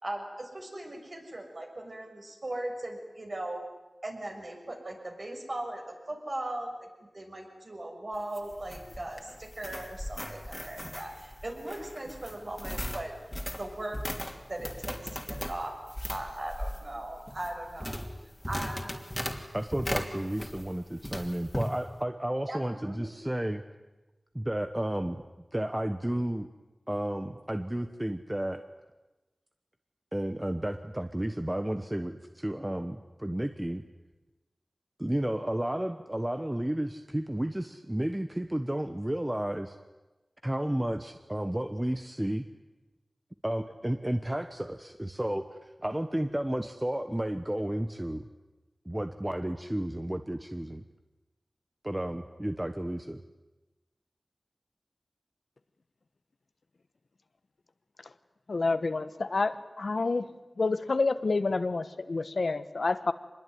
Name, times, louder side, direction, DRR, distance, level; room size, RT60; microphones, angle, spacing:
voice 1, 0.0-3.6 4.0-6.9 7.1-13.1 13.6-14.0 14.5-15.7 16.1-18.0 18.5-18.9 22.5-23.1, right 1 dB, 50° right, 2 dB, 6.5 m, -38 dB
sound 1, 8.1-20.7 21.0-21.7, equal, 10° left, 3.0 m, -38 dB
voice 2, 19.5-23.6 24.3-25.2 25.5-26.5 26.9-28.6 30.1-33.8 35.0-39.8 40.4-42.5 43.4-48.3 48.8-50.8 51.8-53.2, right 1 dB, 15° right, 8 dB, 1.1 m, -32 dB
voice 3, 58.5-60.3 60.6-63.1, left 3 dB, 75° left, 12 dB, 1.1 m, -28 dB
25.5 x 21.0 x 9.4 m, 1.1 s
wide cardioid pair, 65°, 0 cm